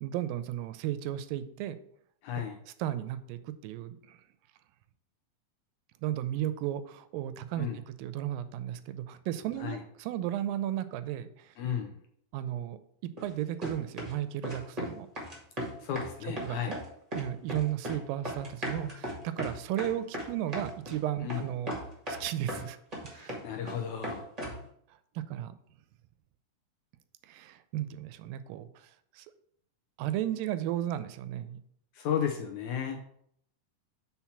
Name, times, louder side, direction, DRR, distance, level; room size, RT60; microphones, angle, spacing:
voice 1, 0.0-1.8 2.4-2.5 2.8-4.2 6.0-11.5 12.3-12.8 13.2-15.1 16.4-16.6 17.1-21.7 22.1-22.8 23.0-23.4 25.2-25.6 27.2-28.9 29.2-29.3 30.0-31.6, right 12 dB, 90° right, 13 dB, 2.3 m, -34 dB
voice 2, 2.2-2.6 7.6-7.8 9.6-9.8 11.6-11.9 15.8-16.7 21.2-21.5 23.1-24.3 31.9-33.0, left 8 dB, 75° left, 4 dB, 1.8 m, -34 dB
sound 1, 13.2-13.3 13.6-14.2 14.4-14.9 15.2-16.1 16.4-16.9 17.1-18.0 18.2-21.0 21.3-21.4 21.7-22.6 22.9-23.8 24.0-24.6, equal, 25° right, 0.8 m, -36 dB
5.7 x 4.2 x 5.8 m, 0.68 s
omnidirectional pair, 4.0 m